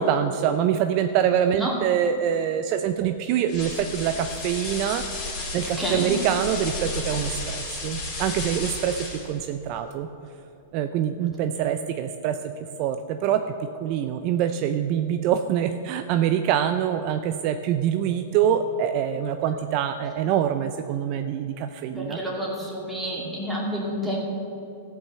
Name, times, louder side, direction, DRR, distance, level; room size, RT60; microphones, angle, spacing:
voice 1, 0.0-5.0 5.5-10.1 10.7-12.4 12.8-13.4 13.8-22.2, right 9 dB, 40° right, 8 dB, 0.4 m, -25 dB
sound 1, 3.5-9.4, left 3 dB, 35° left, 2.8 m, -33 dB
voice 2, 5.6-6.2 21.9-24.2, equal, ahead, -5 dB, 2.4 m, -29 dB
14.0 x 5.6 x 7.5 m, 2.9 s
supercardioid pair, 150°, 0 cm